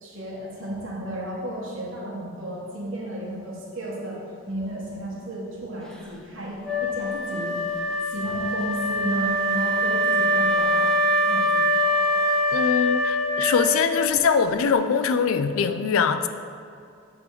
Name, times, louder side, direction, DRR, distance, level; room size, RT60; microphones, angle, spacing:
voice 1, 0.0-4.2 4.5-7.6 8.0-10.9 11.2-11.6, right 1 dB, 70° right, -6 dB, 1.2 m, -33 dB
Wind instrument woodwind instrument, 6.6-14.2, equal, 5° left, 0.5 m, -23 dB
voice 2, 12.5-16.3, left 6 dB, 85° left, 10 dB, 0.4 m, -22 dB
6.7 x 3.5 x 4.5 m, 2.4 s
head